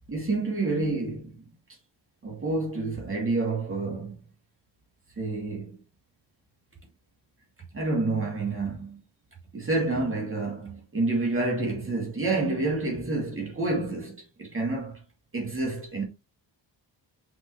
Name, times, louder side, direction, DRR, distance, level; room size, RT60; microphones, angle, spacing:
voice 1, 0.1-1.4 2.2-4.2 5.2-5.8 7.7-9.0 9.5-15.0 15.3-16.0, right 3 dB, 25° right, 2.5 m, -28 dB
5.8 x 5.5 x 3.1 m
wide cardioid pair, 140°, 47 cm